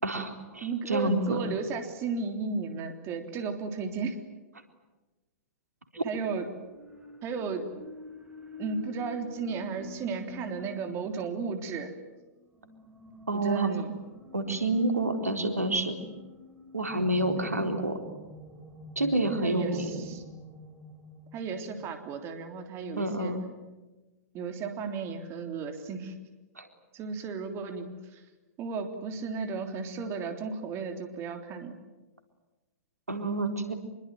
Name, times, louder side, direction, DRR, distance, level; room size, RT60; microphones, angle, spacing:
voice 1, 0.0-1.4 5.9-6.0 13.3-13.7 14.3-16.0 16.7-18.0 19.0-20.0 23.0-23.4 26.6-26.7 33.1-33.7, right 2 dB, 90° right, 5 dB, 4.0 m, -28 dB
voice 2, 0.6-4.2 6.0-6.5 7.2-7.7 8.6-11.9 13.3-13.9 17.4-17.7 19.4-20.2 21.3-23.3 24.3-26.2 26.9-28.2 28.6-31.8, right 5 dB, 30° right, 6 dB, 3.4 m, -34 dB
sound 1, 5.9-22.2, left 1 dB, 10° right, 5.4 m, -48 dB
26.0 x 23.0 x 9.3 m, 1.1 s
figure-of-eight pair, 110°, 8 cm